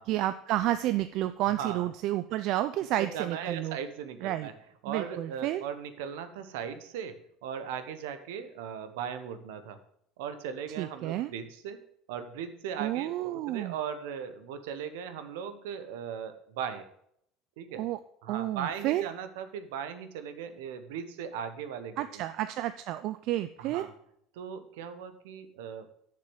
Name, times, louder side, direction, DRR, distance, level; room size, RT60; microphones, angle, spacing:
voice 1, 0.1-3.8 4.2-4.5 4.9-5.6 10.8-11.3 12.8-13.7 17.8-18.0 18.3-19.1 22.0-23.9, right 14 dB, 65° right, 12 dB, 0.4 m, -30 dB
voice 2, 3.0-4.5 4.8-7.2 7.4-9.8 10.2-11.8 12.1-16.8 17.6-17.9 18.2-22.2 23.6-23.9 24.3-25.9, right 7 dB, 80° right, 10 dB, 1.0 m, -38 dB
6.8 x 6.7 x 7.2 m, 0.71 s
hypercardioid pair, 85°, 0 cm